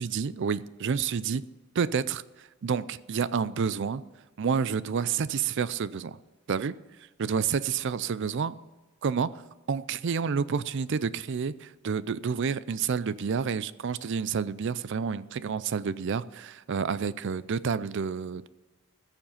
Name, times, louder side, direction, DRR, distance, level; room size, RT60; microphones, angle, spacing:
voice 1, 0.0-1.4 1.8-4.0 4.4-6.2 6.5-6.8 7.2-8.6 9.0-9.4 9.7-18.5, right 6 dB, 55° right, 17 dB, 0.4 m, -29 dB
14.0 x 7.2 x 5.7 m, 1.2 s
head